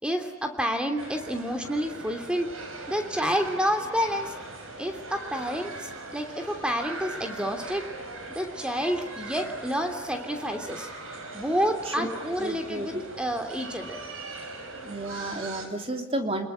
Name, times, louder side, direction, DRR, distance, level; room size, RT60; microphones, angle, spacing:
voice 1, 0.0-2.5 2.9-4.3 4.8-7.9 8.3-10.9 11.3-14.0, equal, 5° right, 5 dB, 3.0 m, -29 dB
sound 1, 1.0-15.7, right 2 dB, 85° right, 5.8 m, -40 dB
voice 2, 11.9-12.9 14.8-16.5, right 1 dB, 25° right, 4 dB, 3.1 m, -32 dB
30.0 x 21.5 x 9.1 m, 1.1 s
head